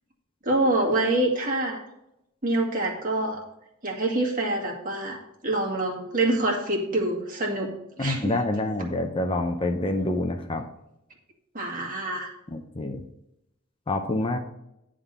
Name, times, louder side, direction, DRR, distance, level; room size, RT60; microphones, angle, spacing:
voice 1, 0.4-1.8 2.4-3.4 3.8-5.2 5.4-7.7 8.0-8.3 11.5-12.3, right 2 dB, 40° right, -1 dB, 1.9 m, -26 dB
voice 2, 8.0-10.6 12.5-13.0 13.9-14.4, left 2 dB, 25° left, 5 dB, 0.6 m, -27 dB
9.9 x 3.7 x 6.8 m, 0.83 s
head